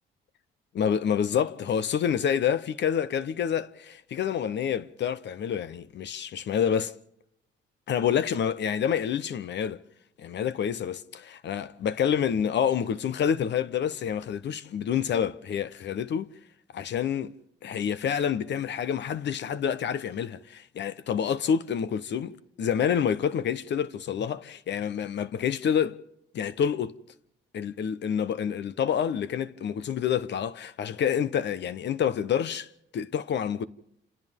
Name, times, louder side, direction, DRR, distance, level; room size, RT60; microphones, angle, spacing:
voice 1, 0.7-6.9 7.9-9.8 10.2-16.3 16.7-17.4 17.6-26.0 26.3-27.0 27.5-32.7 32.9-33.7, left 8 dB, 65° left, 1.0 m, -28 dB
29.0 x 28.0 x 3.7 m
cardioid pair, 90°, 20 cm